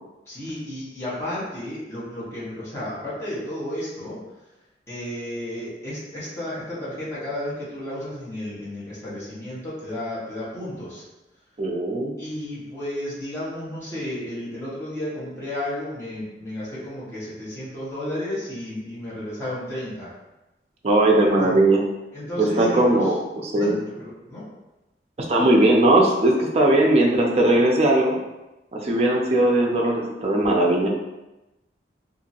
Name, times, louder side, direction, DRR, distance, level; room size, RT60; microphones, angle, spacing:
voice 1, 0.3-4.2 4.9-11.0 12.2-20.1 21.4-21.5 22.1-23.1 23.5-24.4, left 1 dB, 15° left, -10 dB, 1.0 m, -32 dB
voice 2, 11.6-12.1 20.8-21.8 22.4-23.8 25.2-28.2 28.7-30.9, right 1 dB, 35° right, -1 dB, 0.4 m, -19 dB
2.8 x 2.5 x 2.7 m, 1.0 s
head